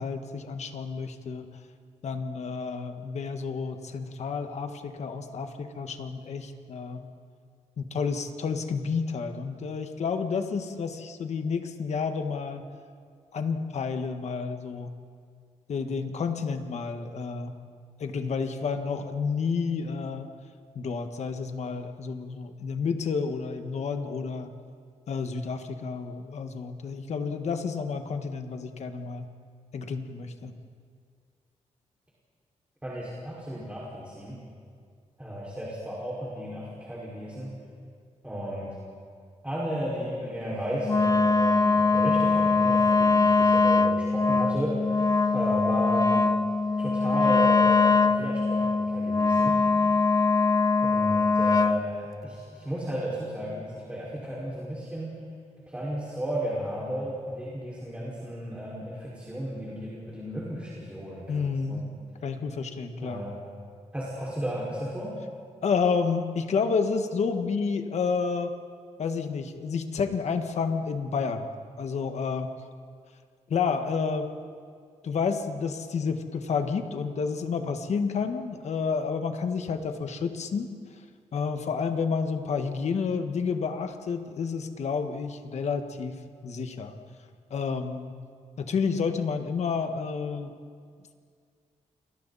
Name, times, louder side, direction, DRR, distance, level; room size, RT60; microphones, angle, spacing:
voice 1, 0.0-1.5 2.0-7.1 7.8-12.6 13.3-14.9 15.7-17.5 18.0-20.3 20.7-24.5 25.1-29.3 29.7-30.5 61.3-61.9 62.2-63.2 65.6-68.5 69.0-71.5 71.8-72.5 73.5-74.3 75.0-80.7 81.3-86.1 86.4-86.9 87.5-88.1 88.6-90.6, left 5 dB, 65° left, 6 dB, 1.6 m, -30 dB
voice 2, 32.8-34.4 35.2-37.5 38.2-38.7 39.4-46.3 46.8-49.5 50.8-55.1 55.7-61.8 63.0-63.3 63.9-65.1, equal, 10° right, -7 dB, 5.3 m, -34 dB
Wind instrument woodwind instrument, 40.8-51.9, left 4 dB, 30° left, 0.9 m, -22 dB
29.5 x 24.0 x 4.2 m, 2.1 s
cardioid pair, 110°, 12 cm